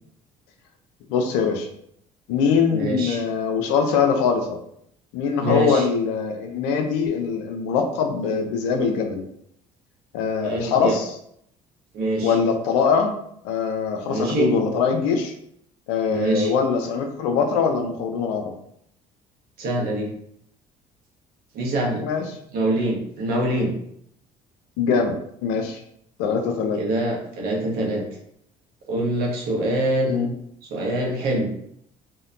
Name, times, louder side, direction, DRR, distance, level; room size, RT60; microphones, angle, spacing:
voice 1, 1.1-1.7 2.3-4.6 5.1-9.2 10.1-11.1 12.2-13.1 13.4-15.3 15.9-18.5 22.0-22.2 24.8-25.2 25.4-25.8 26.2-26.8 30.1-30.3, left 6 dB, 80° left, 5 dB, 0.5 m, -22 dB
voice 2, 2.7-3.2 5.4-5.9 10.3-11.0 11.9-12.3 14.0-14.5 16.1-16.5 19.6-20.1 21.5-22.0 22.5-23.7 26.8-28.0 28.9-30.3 30.7-31.5, right 1 dB, 70° right, -1 dB, 0.8 m, -24 dB
2.7 x 2.1 x 2.4 m, 0.70 s
supercardioid pair, 75°, 17 cm